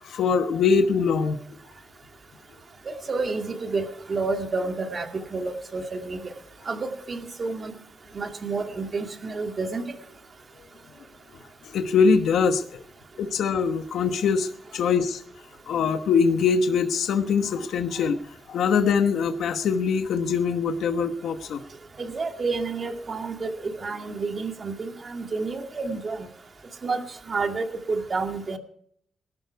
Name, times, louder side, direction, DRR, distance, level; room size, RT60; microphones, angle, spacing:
voice 1, 0.0-1.6 11.6-12.8 13.2-15.2 15.7-21.6, left 5 dB, 85° left, 7 dB, 1.1 m, -23 dB
voice 2, 3.1-6.3 6.7-7.7 8.1-9.8 22.0-26.3 26.8-27.0 27.3-28.6, right 3 dB, 45° right, 4 dB, 2.3 m, -29 dB
20.0 x 12.0 x 4.6 m, 0.66 s
cardioid pair, 90°, 0 cm